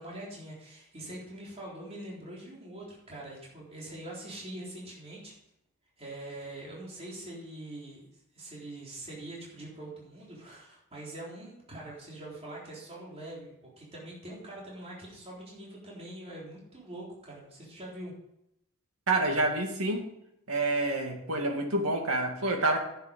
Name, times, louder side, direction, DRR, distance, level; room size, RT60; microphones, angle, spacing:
voice 1, 0.0-5.3 6.0-8.0 8.3-18.1, right 1 dB, 30° right, -5 dB, 3.8 m, -43 dB
voice 2, 19.1-20.1 20.5-22.8, right 2 dB, 90° right, 3 dB, 2.1 m, -28 dB
10.5 x 8.5 x 5.3 m, 0.80 s
head